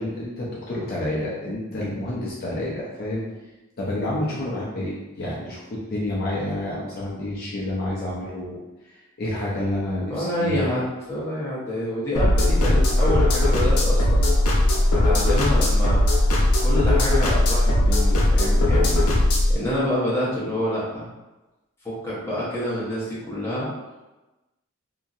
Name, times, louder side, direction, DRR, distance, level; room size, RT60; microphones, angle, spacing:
voice 1, 0.0-3.2 3.8-8.6 8.9-10.7, left 1 dB, 45° left, -6 dB, 0.5 m, -29 dB
voice 2, 1.7-2.0 10.1-14.3 14.9-16.0 16.6-19.1 19.5-21.1 21.8-23.7, left 1 dB, 10° left, -8 dB, 0.8 m, -27 dB
sound 1, 12.2-19.5, left 1 dB, 85° left, 0.6 m, -19 dB
2.8 x 2.6 x 2.4 m, 1.1 s
head